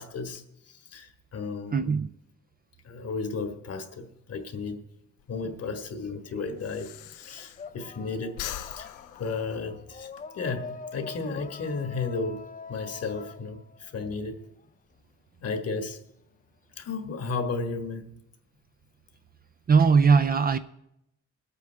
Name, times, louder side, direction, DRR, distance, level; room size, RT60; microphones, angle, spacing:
voice 1, 0.0-1.9 2.8-4.8 5.3-8.5 8.7-8.9 9.2-10.1 10.3-14.4 15.4-16.0 16.8-18.1, left 4 dB, 55° left, 1.5 m, -34 dB
voice 2, 1.7-2.1 19.7-20.6, right 5 dB, 30° right, 0.5 m, -20 dB
Breathing, 5.2-8.0 8.3-10.2, left 11 dB, 90° left, 0.6 m, -41 dB
sound 1, 5.3-6.6 6.9-14.7, left 4 dB, 25° left, 0.5 m, -44 dB
19.0 x 8.5 x 3.4 m
cardioid pair, 90°, 30 cm